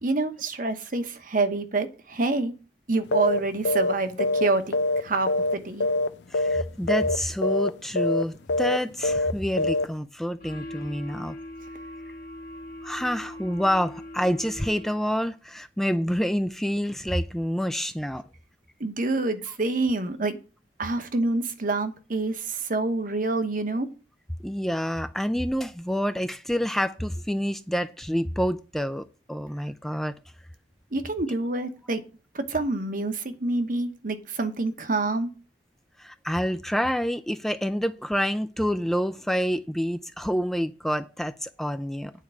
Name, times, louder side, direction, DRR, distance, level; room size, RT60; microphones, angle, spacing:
voice 1, 0.0-2.5 2.9-5.9 18.8-20.4 20.8-23.9 30.9-32.0 32.3-35.3, right 2 dB, 50° right, 1.1 m, -27 dB
sound 1, 3.1-3.4 3.6-3.9 4.2-5.6 5.8-6.1 6.3-6.6 6.9-7.2 7.4-7.7 8.0-8.2 8.5-8.8 9.0-9.3 9.6-9.8, left 2 dB, 80° left, 0.6 m, -24 dB
voice 2, 6.3-11.4 12.8-18.2 24.4-30.1 36.0-42.1, equal, ahead, 0.3 m, -28 dB
sound 2, 10.4-15.2, left 1 dB, 55° left, 1.8 m, -41 dB
9.3 x 4.6 x 7.5 m
head